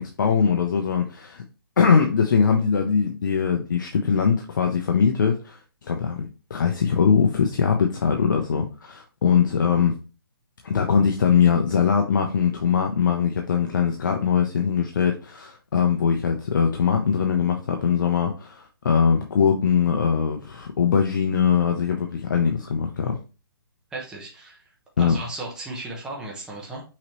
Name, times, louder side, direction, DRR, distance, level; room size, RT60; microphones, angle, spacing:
voice 1, 0.0-1.4 1.8-5.6 5.8-9.9 10.6-23.2 25.0-25.1, left 6 dB, 55° left, 0.7 m, -21 dB
voice 2, 23.9-24.6 25.0-26.8, right 2 dB, 5° right, 0.9 m, -35 dB
5.8 x 3.1 x 2.9 m
hypercardioid pair, 160°, 13 cm